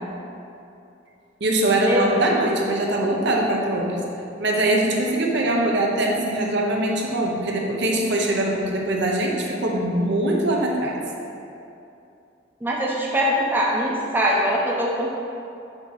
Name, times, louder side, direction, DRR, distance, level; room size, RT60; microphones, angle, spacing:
voice 1, 1.4-4.0 4.4-11.0, right 1 dB, 65° right, -1 dB, 0.8 m, -22 dB
voice 2, 12.6-15.1, equal, 10° right, -4 dB, 0.6 m, -22 dB
6.8 x 2.8 x 5.7 m, 2.7 s
head